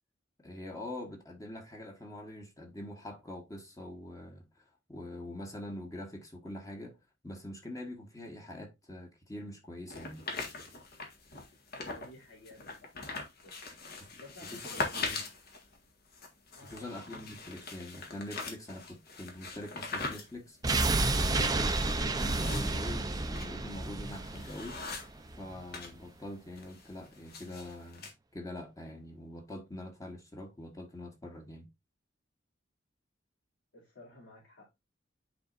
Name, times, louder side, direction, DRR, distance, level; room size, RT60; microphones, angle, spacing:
voice 1, 0.4-4.6 4.9-7.0 7.2-10.2 14.5-15.2 16.6-24.8 25.4-31.7, left 1 dB, 20° left, 1.4 m, -44 dB
sound 1, 9.9-12.1 12.5-25.9 26.2-28.1, left 3 dB, 55° left, 1.8 m, -41 dB
voice 2, 11.7-13.1 13.4-13.5 14.2-15.1 16.5-16.9 33.7-34.7, equal, 80° left, 2.9 m, -53 dB
sound 2, 20.6-25.6 25.9-26.0, right 2 dB, 20° right, 0.6 m, -31 dB
9.6 x 4.3 x 2.6 m
head